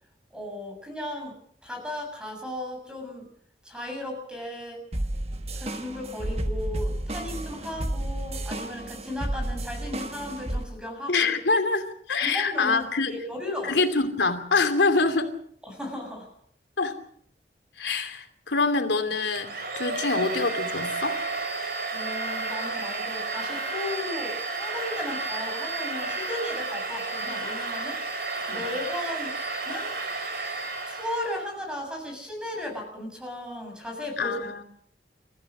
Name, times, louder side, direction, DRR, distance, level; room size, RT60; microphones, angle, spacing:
voice 1, 0.3-1.3 1.6-3.3 3.6-4.8 5.6-11.3 12.2-13.8 15.6-16.3 21.9-28.0 28.5-29.3 29.7-30.0 30.9-34.6, left 1 dB, 5° right, 3 dB, 7.1 m, -35 dB
sound 1, 4.9-10.6, right 1 dB, 35° right, 1.3 m, -31 dB
voice 2, 11.1-13.1 13.6-15.3 16.8-16.9 17.8-21.2 28.5-28.6 34.2-34.6, left 3 dB, 85° left, 7 dB, 2.8 m, -25 dB
Domestic sounds home sounds, 19.4-31.5, right 3 dB, 60° right, 4.3 m, -32 dB
29.0 x 14.5 x 6.3 m, 0.65 s
head